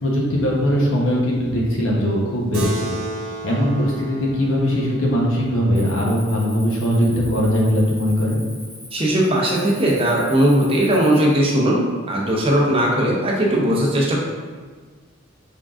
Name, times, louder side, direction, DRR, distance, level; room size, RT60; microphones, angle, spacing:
voice 1, 0.0-3.0 3.4-8.4, equal, 65° left, -3 dB, 0.8 m, -20 dB
Keyboard (musical), 2.5-7.4, right 1 dB, 70° right, 1.0 m, -34 dB
Cricket, 5.7-11.4, equal, 5° left, 1.0 m, -41 dB
voice 2, 8.9-11.8 12.1-14.2, right 1 dB, 25° right, -3 dB, 0.6 m, -18 dB
3.7 x 3.6 x 2.4 m, 1.5 s
head